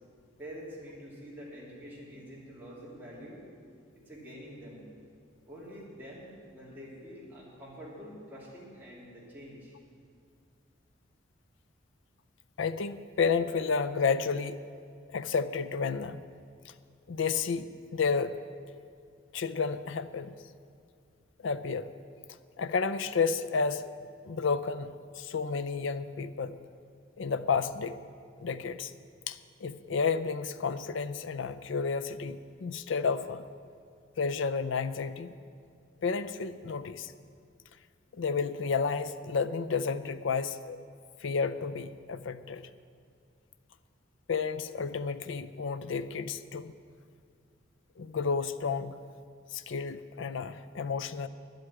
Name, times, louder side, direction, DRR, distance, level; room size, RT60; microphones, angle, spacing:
voice 1, 0.4-3.4 3.9-4.9 5.5-9.7, equal, 10° right, -6 dB, 2.7 m, -46 dB
voice 2, 12.6-14.6 15.1-16.2 17.1-18.4 19.3-20.3 21.4-21.9 22.6-23.9 24.2-26.6 27.2-28.0 28.4-28.9 29.3-33.4 34.2-35.3 36.0-37.1 38.1-40.8 41.2-42.7 44.3-46.7 48.0-49.0 49.5-51.3, left 5 dB, 70° left, 12 dB, 0.5 m, -31 dB
10.5 x 8.0 x 8.7 m, 2.3 s
head